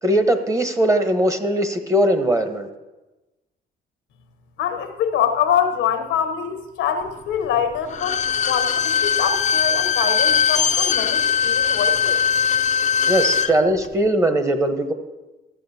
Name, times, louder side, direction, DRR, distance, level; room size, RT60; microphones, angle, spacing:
voice 1, 0.0-2.7 13.1-14.9, right 1 dB, 15° right, 8 dB, 1.0 m, -20 dB
voice 2, 4.6-12.2, left 8 dB, 90° left, 8 dB, 0.9 m, -24 dB
Bowed string instrument, 7.9-13.5 13.8-13.9, left 7 dB, 40° left, 0.5 m, -20 dB
13.5 x 8.6 x 2.8 m, 1.1 s
cardioid pair, 90°, 20 cm